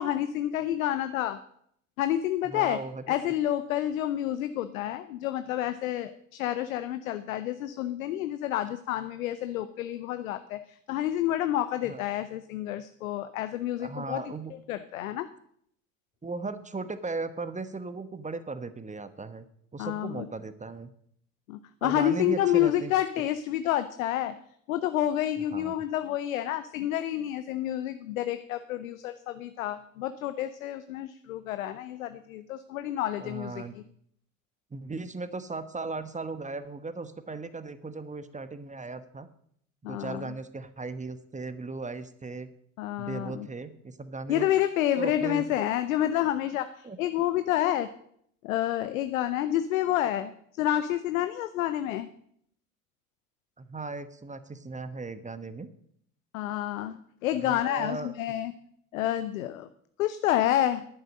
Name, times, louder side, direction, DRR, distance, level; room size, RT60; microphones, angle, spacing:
voice 1, 0.0-1.4 2.0-2.8 3.1-10.6 10.9-14.2 14.7-15.3 19.8-20.3 21.5-24.3 24.7-33.6 39.8-40.2 42.8-43.5 44.3-47.9 48.4-50.3 50.6-52.1 56.3-58.5 58.9-59.7 60.0-60.9, left 12 dB, 75° left, 11 dB, 0.7 m, -29 dB
voice 2, 2.4-3.2 11.8-12.0 13.8-14.5 16.2-19.5 19.7-20.9 21.8-22.9 25.5-25.7 33.2-33.8 34.7-39.3 39.9-42.5 43.0-44.5 45.0-45.6 46.8-47.0 53.6-55.7 57.3-58.1, right 3 dB, 20° right, 12 dB, 1.1 m, -37 dB
11.0 x 9.4 x 6.4 m, 0.68 s
figure-of-eight pair, 55°, 41 cm